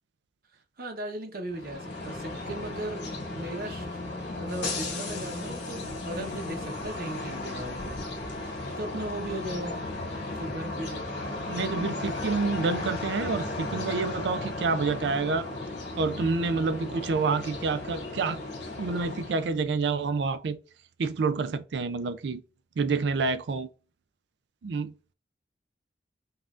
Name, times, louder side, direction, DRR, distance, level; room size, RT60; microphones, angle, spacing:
voice 1, 0.8-3.0 3.3-3.9 4.4-7.9 8.3-9.9 10.3-11.4, right 1 dB, 55° right, 0.9 m, -37 dB
sound 1, 1.5-19.6, left 2 dB, 80° left, 1.8 m, -35 dB
voice 2, 11.5-15.5 16.0-18.4 18.8-20.6 21.0-22.4 22.8-23.7 24.6-24.9, right 4 dB, 70° right, 0.4 m, -28 dB
5.3 x 2.5 x 2.4 m
head